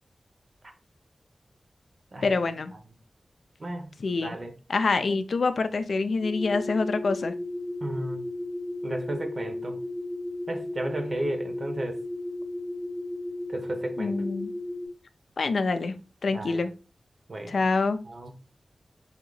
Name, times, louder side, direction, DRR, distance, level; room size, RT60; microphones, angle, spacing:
voice 1, 2.2-2.7 4.0-4.4 4.7-7.3 14.0-14.5 15.4-15.9 16.2-16.7 17.5-18.0, left 3 dB, 80° left, 9 dB, 0.4 m, -26 dB
voice 2, 3.6-3.9 4.2-4.5 7.8-8.2 8.8-9.8 10.5-12.0 13.5-14.1 16.3-16.6 17.3-17.5 18.1-18.3, right 1 dB, 50° right, 5 dB, 0.8 m, -33 dB
sound 1, 6.2-14.9, left 1 dB, 70° right, 1.4 m, -34 dB
3.5 x 2.8 x 3.9 m, 0.34 s
wide cardioid pair, 95°, 0 cm